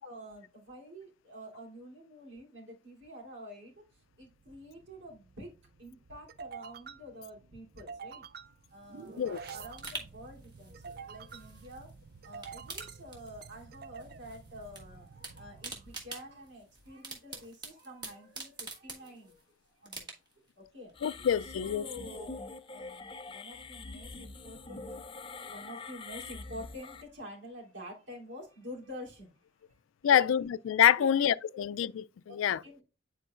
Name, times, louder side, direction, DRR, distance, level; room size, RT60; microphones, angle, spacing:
voice 1, 0.0-11.9 12.2-19.4 19.8-20.1 20.4-24.9 25.3-29.3 30.0-30.3 30.9-31.1 32.3-32.4 32.6-32.8, equal, 65° right, 3.1 m, -48 dB
sound 1, 4.0-16.7, right 5 dB, 50° right, 0.4 m, -49 dB
sound 2, 8.7-11.9 12.2-13.7 14.0-14.8 15.1-19.4 19.8-20.5 20.9-21.0, right 3 dB, 25° right, 1.5 m, -46 dB
voice 2, 21.0-21.9 30.0-32.6, left 9 dB, 85° left, 0.3 m, -26 dB
sound 3, 21.0-27.0, left 3 dB, 25° left, 0.5 m, -44 dB
9.9 x 4.5 x 2.4 m
head